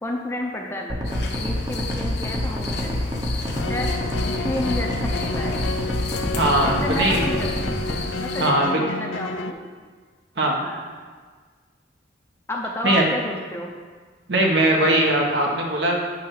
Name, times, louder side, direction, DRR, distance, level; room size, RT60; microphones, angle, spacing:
voice 1, 0.0-3.2 3.7-5.6 6.6-7.7 8.2-9.6 10.5-10.8 12.5-13.7, left 1 dB, 15° left, 0 dB, 0.6 m, -31 dB
sound 1, 0.9-8.0, left 1 dB, 20° right, 0.8 m, -27 dB
sound 2, 1.0-8.5, left 4 dB, 60° left, 0.8 m, -35 dB
sound 3, 3.6-9.5, left 3 dB, 90° left, 0.5 m, -31 dB
voice 2, 6.3-7.2 8.4-8.8 10.4-10.6 12.8-13.0 14.3-16.0, right 1 dB, 65° right, -1 dB, 1.2 m, -20 dB
8.4 x 3.3 x 6.5 m, 1.5 s
head